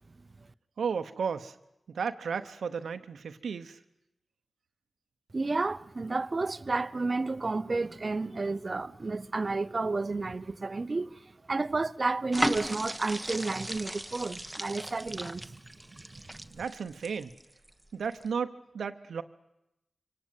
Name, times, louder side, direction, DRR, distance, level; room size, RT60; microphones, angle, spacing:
voice 1, 0.8-1.5 1.9-3.8 16.5-17.3 17.9-19.2, right 6 dB, 85° right, 0.9 m, -34 dB
voice 2, 5.3-11.2 11.5-15.5 16.3-16.4, right 3 dB, 45° right, 0.8 m, -31 dB
sound 1, 12.3-17.7 18.1-18.3, right 1 dB, 10° right, 1.1 m, -36 dB
25.0 x 17.5 x 9.2 m
cardioid pair, 50°, 0 cm